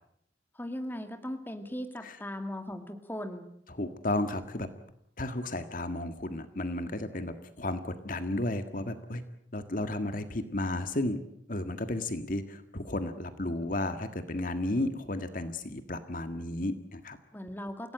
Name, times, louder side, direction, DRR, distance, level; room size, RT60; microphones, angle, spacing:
voice 1, 0.5-3.5 17.3-17.9, left 1 dB, 10° left, 6 dB, 2.1 m, -38 dB
voice 2, 3.7-4.7 5.2-9.2 9.5-11.2 11.5-17.2, left 1 dB, 50° left, 9 dB, 1.7 m, -33 dB
28.0 x 17.0 x 9.0 m, 0.70 s
head